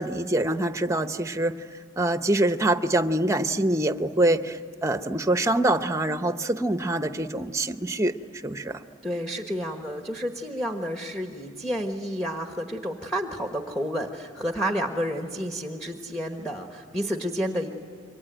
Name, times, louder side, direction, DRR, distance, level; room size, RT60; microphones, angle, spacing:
voice 1, 0.0-1.5 2.0-8.1 8.4-8.8, right 1 dB, 15° right, 9 dB, 0.8 m, -25 dB
voice 2, 9.0-17.7, equal, 5° left, 4 dB, 1.2 m, -30 dB
28.0 x 24.0 x 9.0 m, 2.4 s
head